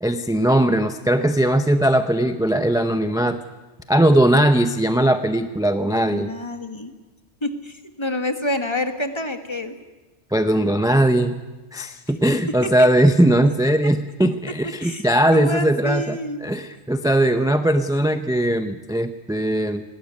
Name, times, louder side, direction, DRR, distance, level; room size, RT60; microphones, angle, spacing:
voice 1, 0.0-3.4 3.9-6.3 10.3-11.4 11.7-19.8, right 1 dB, 5° right, 9 dB, 0.5 m, -19 dB
voice 2, 5.8-6.9 7.4-9.7 12.6-12.7 14.8-15.0 15.3-16.4, left 1 dB, 25° left, 7 dB, 1.5 m, -28 dB
19.5 x 17.5 x 9.5 m, 1.2 s
omnidirectional pair, 1.2 m